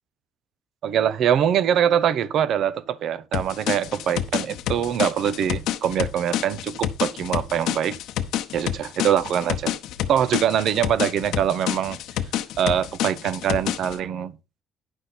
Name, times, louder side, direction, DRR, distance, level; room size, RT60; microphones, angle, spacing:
voice 1, 0.8-8.0 8.5-9.8 10.1-12.0 12.6-14.3, right 9 dB, 50° right, 0.6 m, -23 dB
sound 1, 3.3-14.0, left 12 dB, 80° left, 0.8 m, -28 dB
10.5 x 6.2 x 4.1 m
cardioid pair, 180°, 0 cm